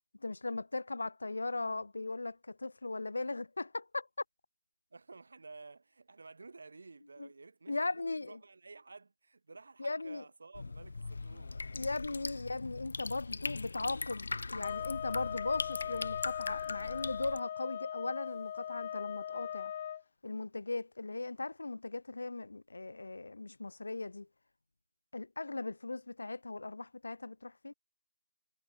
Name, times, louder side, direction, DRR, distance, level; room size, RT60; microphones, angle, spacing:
voice 1, 0.2-4.1 7.2-7.3 7.7-8.4 9.8-10.2 11.7-19.7 20.2-24.3 25.1-27.7, left 3 dB, 70° left, 1.3 m, -38 dB
voice 2, 4.9-11.6, right 3 dB, 55° right, 7.7 m, -53 dB
sound 1, 10.5-17.4, left 3 dB, 55° left, 4.3 m, -40 dB
sound 2, 14.6-20.0, left 10 dB, 20° left, 1.0 m, -40 dB
figure-of-eight pair, 175°, 0 cm